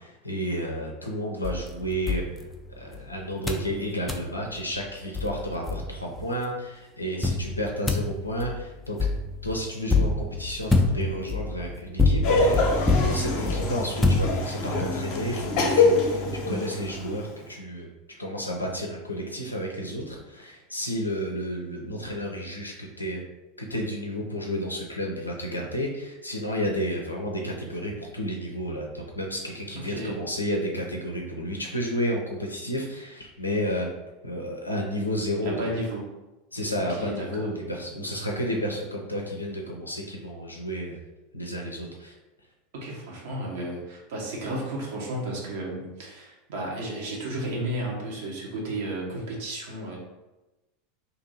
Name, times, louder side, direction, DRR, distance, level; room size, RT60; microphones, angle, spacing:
voice 1, 0.0-2.2 2.8-9.0 9.4-17.9 18.2-23.2 23.6-33.9 34.2-35.7 36.5-41.0 41.3-42.1, equal, 85° left, 0 dB, 0.4 m, -31 dB
sound 1, 1.4-3.0 3.5-3.7 4.1-4.3 4.8-4.9 5.1-6.2 7.2-14.8, left 3 dB, 10° left, 0.4 m, -26 dB
Laughter, 12.2-17.3, left 3 dB, 50° left, 0.7 m, -25 dB
voice 2, 29.7-30.2 35.4-36.1 36.8-37.5 42.7-50.0, right 1 dB, 60° right, -2 dB, 1.0 m, -33 dB
2.7 x 2.6 x 4.0 m, 1.0 s
figure-of-eight pair, 80°, 0 cm